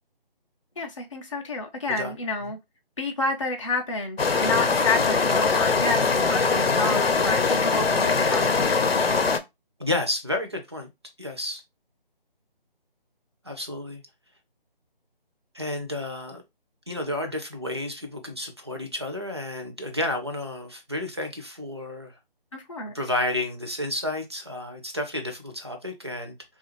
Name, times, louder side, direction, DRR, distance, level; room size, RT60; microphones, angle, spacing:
voice 1, 0.8-2.6 3.0-8.9 22.5-22.9, left 3 dB, 35° left, 0.5 m, -29 dB
sound 1, 4.2-9.4, left 4 dB, 90° left, 0.7 m, -22 dB
voice 2, 9.8-10.9 11.2-11.6 13.4-14.0 15.5-16.4 16.9-22.2 22.9-26.3, left 1 dB, 30° right, 0.4 m, -31 dB
2.7 x 2.4 x 3.0 m
figure-of-eight pair, 160°, 29 cm